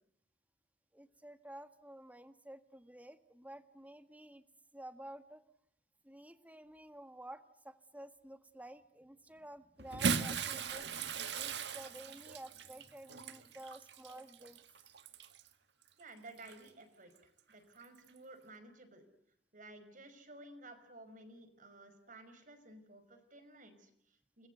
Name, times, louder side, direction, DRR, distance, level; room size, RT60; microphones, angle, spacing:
voice 1, 0.9-4.4 4.7-5.4 6.0-14.6, right 1 dB, 10° right, 10 dB, 1.7 m, -52 dB
Bathtub (filling or washing) / Splash splatter, 9.8-15.5 16.4-16.5 18.0-18.1, right 5 dB, 70° right, 1.7 m, -38 dB
voice 2, 16.0-19.0 19.5-24.5, right 2 dB, 50° right, 9 dB, 5.3 m, -55 dB
29.5 x 21.5 x 8.2 m, 0.71 s
head